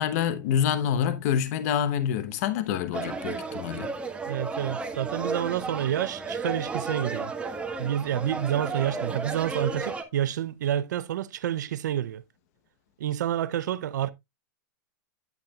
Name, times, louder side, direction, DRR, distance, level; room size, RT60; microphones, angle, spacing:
voice 1, 0.0-3.9, left 9 dB, 60° left, 1.0 m, -27 dB
sound 1, 2.9-10.0, right 4 dB, 10° right, 1.5 m, -33 dB
voice 2, 4.3-7.3 7.8-12.2 13.0-14.1, right 11 dB, 80° right, 0.6 m, -29 dB
9.4 x 8.7 x 2.4 m
hypercardioid pair, 130°, 10 cm